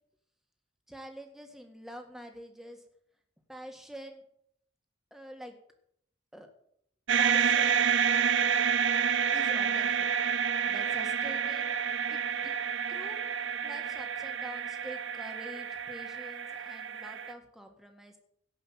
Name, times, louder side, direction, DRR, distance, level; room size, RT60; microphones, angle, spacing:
voice 1, 0.9-2.8 3.5-4.2 5.1-5.6 6.3-6.5 7.2-7.9 9.3-10.1 10.6-11.8 12.1-12.5 12.9-13.2 13.6-18.2, equal, ahead, 4 dB, 1.8 m, -46 dB
sound 1, 7.1-17.3, right 7 dB, 70° right, 0.9 m, -29 dB
17.0 x 5.7 x 7.4 m, 0.68 s
head